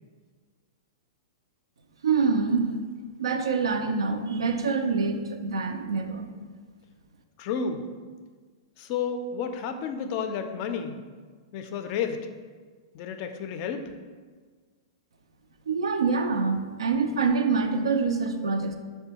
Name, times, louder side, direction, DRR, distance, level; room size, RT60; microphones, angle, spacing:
voice 1, 2.0-2.7 3.2-6.3 15.7-18.8, right 4 dB, 90° right, 6 dB, 0.3 m, -25 dB
voice 2, 7.4-7.8 8.8-11.0 11.5-12.3 12.9-13.9, left 6 dB, 45° left, 7 dB, 0.3 m, -31 dB
5.2 x 2.1 x 2.8 m, 1.5 s
hypercardioid pair, 130°, 3 cm